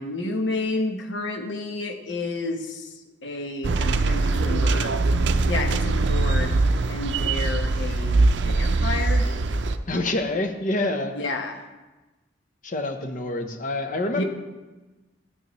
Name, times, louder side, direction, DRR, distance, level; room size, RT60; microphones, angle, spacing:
voice 1, 0.0-4.9 5.5-6.5 6.9-9.3 11.1-11.6 14.1-14.2, left 2 dB, 70° left, 4 dB, 1.0 m, -30 dB
sound 1, 3.6-9.8, right 3 dB, 70° right, 0.5 m, -22 dB
voice 2, 9.9-11.3 12.6-14.2, left 2 dB, 45° left, 6 dB, 0.8 m, -27 dB
12.0 x 8.0 x 3.1 m, 1.2 s
head